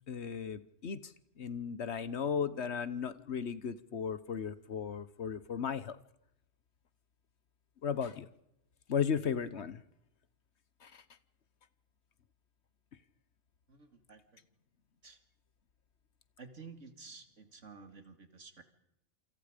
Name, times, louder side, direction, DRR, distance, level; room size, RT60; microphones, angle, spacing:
voice 1, 0.1-6.0 7.8-8.3 8.9-9.8 10.8-11.0, left 7 dB, 60° left, 15 dB, 1.3 m, -36 dB
voice 2, 13.7-14.4 15.0-15.2 16.4-18.6, right 4 dB, 70° right, 8 dB, 2.7 m, -52 dB
28.0 x 26.5 x 5.2 m, 0.81 s
omnidirectional pair, 1.3 m